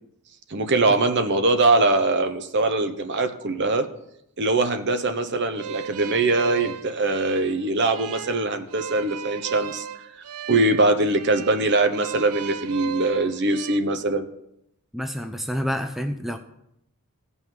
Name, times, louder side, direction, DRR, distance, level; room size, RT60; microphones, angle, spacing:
voice 1, 0.5-3.9 4.4-9.9 10.5-14.3, right 2 dB, 50° right, 8 dB, 0.9 m, -22 dB
sound 1, 5.5-13.8, right 8 dB, 80° right, 0.5 m, -36 dB
voice 2, 14.9-16.4, equal, ahead, 6 dB, 0.5 m, -28 dB
16.0 x 5.6 x 4.7 m, 0.77 s
head